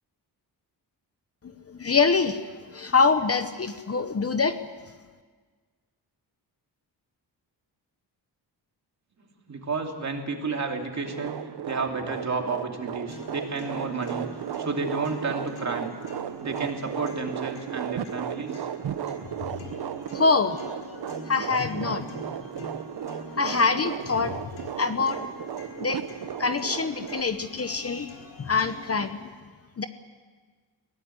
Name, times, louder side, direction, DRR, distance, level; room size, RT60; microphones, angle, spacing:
voice 1, 1.7-2.4 2.7-4.6 19.7-19.8 20.1-20.9 21.3-22.3 23.4-24.5 24.7-25.3 25.8-26.1 26.4-28.1 28.4-29.3 29.8-29.9, left 4 dB, 35° left, 10 dB, 0.9 m, -25 dB
voice 2, 9.5-11.3 11.6-14.3 14.6-15.9 16.4-18.7, right 4 dB, 40° right, 2 dB, 2.8 m, -31 dB
sound 1, 11.1-27.2, right 9 dB, 65° right, 0.9 m, -35 dB
sound 2, 13.1-29.1, left 3 dB, 85° left, 4.3 m, -46 dB
22.0 x 17.5 x 9.6 m, 1.5 s
wide cardioid pair, 140°, 42 cm